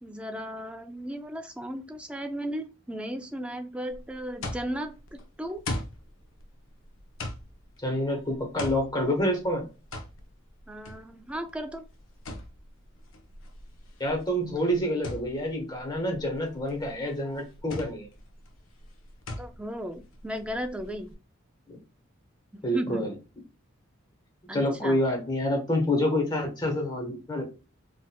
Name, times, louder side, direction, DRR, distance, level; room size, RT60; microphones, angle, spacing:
voice 1, 0.0-5.6 10.7-11.8 19.4-21.1 22.5-23.1 24.5-25.0, equal, 5° right, 6 dB, 0.3 m, -35 dB
sound 1, 3.9-21.1, left 2 dB, 70° left, 0.6 m, -41 dB
voice 2, 7.8-9.6 14.0-18.1 21.7-21.8 22.6-23.1 24.5-27.4, left 1 dB, 20° left, 1 dB, 1.0 m, -27 dB
4.2 x 2.4 x 2.2 m, 0.31 s
head